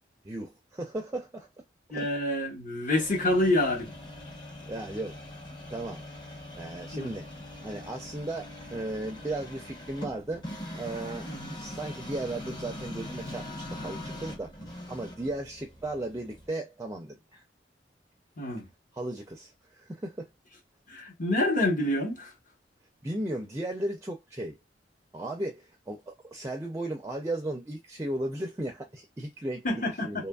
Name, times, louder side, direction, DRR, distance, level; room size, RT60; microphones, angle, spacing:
voice 1, 0.2-1.5 1.9-2.1 4.7-5.2 5.7-6.0 6.6-7.3 7.6-10.5 10.8-11.3 11.5-17.4 18.9-20.3 23.0-24.6 25.1-30.3, right 1 dB, 15° right, 0.4 m, -36 dB
voice 2, 1.9-3.9 6.9-7.1 11.3-11.5 18.4-18.7 20.9-22.3 29.6-30.2, left 1 dB, 45° left, 1.1 m, -27 dB
sound 1, 2.9-16.5, left 1 dB, 25° left, 0.8 m, -42 dB
2.9 x 2.4 x 2.2 m
head